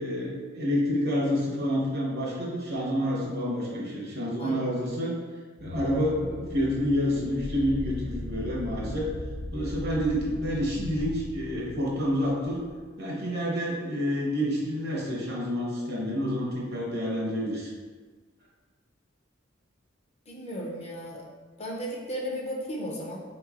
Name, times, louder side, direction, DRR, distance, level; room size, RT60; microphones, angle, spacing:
voice 1, 0.0-5.1 5.6-9.1 9.5-12.6 13.0-17.7, equal, 55° right, -4 dB, 0.9 m, -28 dB
voice 2, 4.4-4.7 20.3-21.3 21.6-23.2, equal, 35° left, -2 dB, 0.5 m, -35 dB
sound 1, 5.6-12.7, left 1 dB, 55° left, 1.0 m, -38 dB
3.6 x 3.0 x 2.4 m, 1.4 s
head